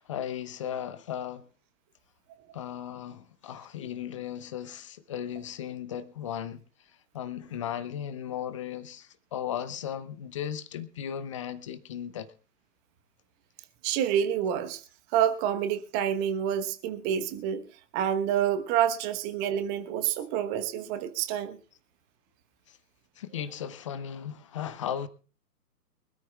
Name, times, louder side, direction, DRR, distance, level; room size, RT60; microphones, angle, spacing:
voice 1, 0.0-1.5 2.5-6.6 7.1-12.3 22.7-22.8 23.2-25.1, left 9 dB, 20° left, 0.6 m, -36 dB
voice 2, 13.8-14.8 15.1-17.6 17.9-21.6, right 9 dB, 20° right, 1.1 m, -28 dB
24.0 x 13.5 x 2.3 m
figure-of-eight pair, 125°, 50 cm